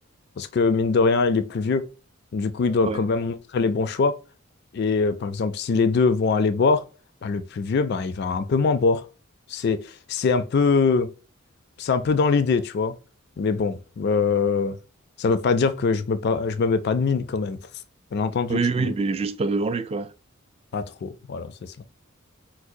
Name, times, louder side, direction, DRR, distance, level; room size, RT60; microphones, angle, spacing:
voice 1, 0.4-1.8 2.3-4.2 4.7-6.9 7.2-9.0 9.5-11.1 11.8-12.9 13.4-14.8 15.2-17.6 18.1-18.9 20.7-21.7, left 4 dB, 50° left, 0.3 m, -23 dB
voice 2, 18.5-20.1, right 4 dB, 30° right, 0.3 m, -25 dB
4.6 x 2.1 x 2.5 m
head